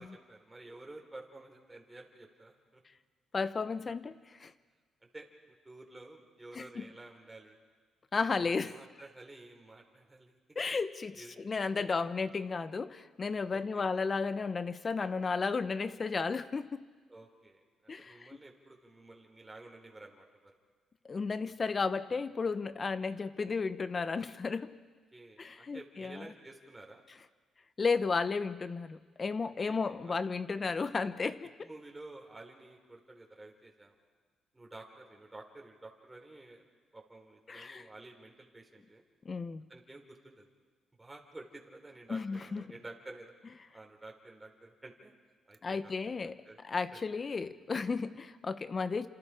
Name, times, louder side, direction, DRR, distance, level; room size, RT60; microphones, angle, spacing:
voice 1, 0.0-2.8 5.1-7.6 8.2-10.4 11.1-11.4 11.8-11.9 13.7-13.9 17.1-20.5 25.1-27.0 29.6-30.2 31.6-33.9 34.5-36.6 36.9-39.0 39.7-40.5 41.0-43.3 43.7-45.1 45.5-45.9 46.4-46.6 46.9-47.0, right 2 dB, 15° right, 1 dB, 3.9 m, -51 dB
voice 2, 3.3-4.5 6.5-6.9 8.1-8.7 10.5-16.8 17.9-18.4 21.0-24.7 25.4-26.3 27.8-31.5 37.5-37.9 39.2-39.7 42.1-42.6 45.6-46.4 46.6-49.1, left 4 dB, 35° left, 13 dB, 1.0 m, -33 dB
29.5 x 27.0 x 5.1 m, 1.4 s
cardioid pair, 90°, 0 cm